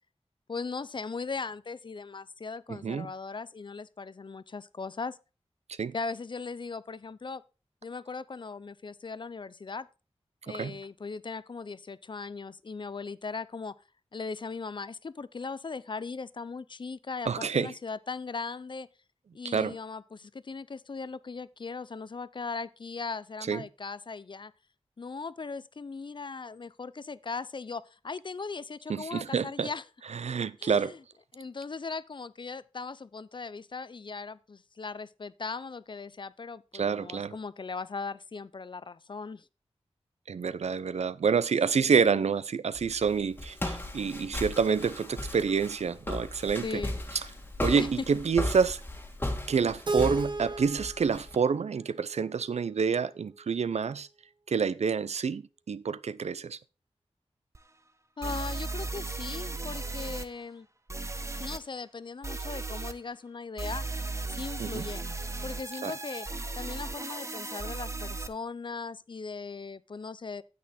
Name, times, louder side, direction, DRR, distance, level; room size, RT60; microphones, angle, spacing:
voice 1, 0.5-5.2 5.9-7.4 7.8-9.9 10.5-13.8 14.1-18.9 19.3-24.5 25.0-29.8 30.6-31.0 31.3-39.5 41.8-42.1 46.6-46.9 47.7-47.9 58.2-60.7 61.4-63.9 64.3-65.0 65.4-66.3 66.5-70.4, left 4 dB, 45° left, 0.5 m, -38 dB
voice 2, 2.7-3.1 5.7-5.9 10.5-10.8 17.3-17.7 19.4-19.8 23.5-23.6 28.9-29.7 30.1-30.9 36.7-37.3 40.3-46.8 47.6-48.8 49.5-54.1 54.5-56.6 64.6-64.9 65.8-65.9, right 6 dB, 80° right, 0.5 m, -28 dB
Walk footsteps, 42.7-51.4, left 1 dB, 20° left, 1.6 m, -36 dB
Keyboard (musical), 49.9-52.8, right 2 dB, 45° right, 1.2 m, -34 dB
sound 1, 57.5-57.6 58.2-60.3 60.9-61.6 62.2-62.9 63.6-68.3, right 3 dB, 25° right, 0.9 m, -36 dB
9.5 x 8.4 x 4.2 m
wide cardioid pair, 105°, 11 cm